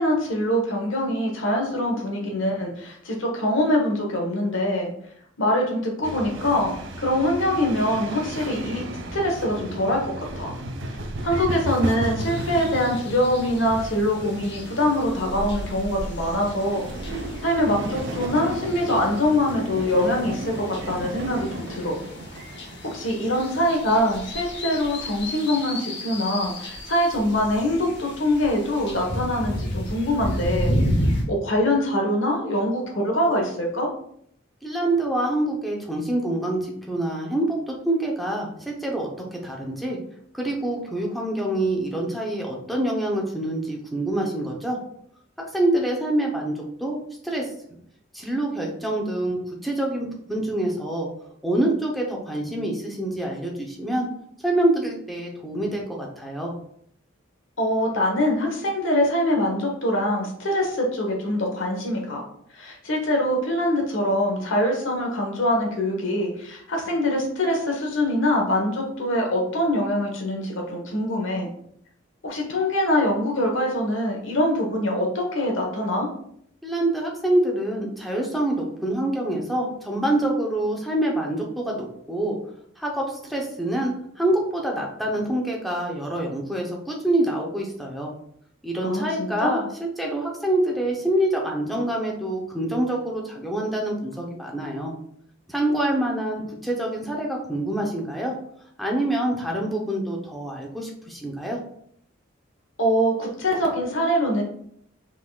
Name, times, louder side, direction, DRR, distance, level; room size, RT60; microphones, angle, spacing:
voice 1, 0.0-4.9 5.4-6.7 7.0-8.8 9.1-10.5 11.2-22.0 22.8-30.7 31.3-33.9 57.6-62.2 62.5-71.5 72.2-76.1 88.8-89.6 102.8-104.4, left 1 dB, 75° left, 1 dB, 1.2 m, -24 dB
sound 1, 6.0-25.3, right 1 dB, 65° right, 0.6 m, -34 dB
sound 2, 12.2-31.2, equal, 55° left, 1.0 m, -33 dB
voice 2, 34.6-40.0 40.3-44.8 45.5-47.0 47.2-47.5 48.1-51.1 51.4-54.1 54.4-56.5 76.6-82.4 82.8-88.1 88.6-94.9 95.5-98.3 98.8-101.6, right 1 dB, ahead, -1 dB, 0.8 m, -26 dB
5.7 x 3.6 x 2.3 m, 0.68 s
head